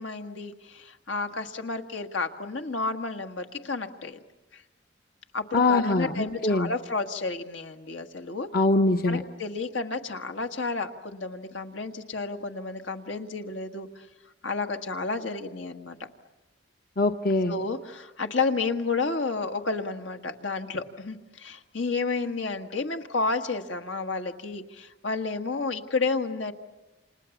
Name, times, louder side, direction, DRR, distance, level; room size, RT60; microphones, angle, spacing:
voice 1, 0.0-4.2 4.5-4.6 5.3-8.5 9.1-14.1 14.4-16.0 17.5-26.5, left 3 dB, 80° left, 5 dB, 1.6 m, -31 dB
voice 2, 5.5-6.7 8.5-9.2 17.0-17.5, left 2 dB, 50° left, 6 dB, 0.8 m, -23 dB
29.5 x 27.0 x 7.2 m, 1.1 s
head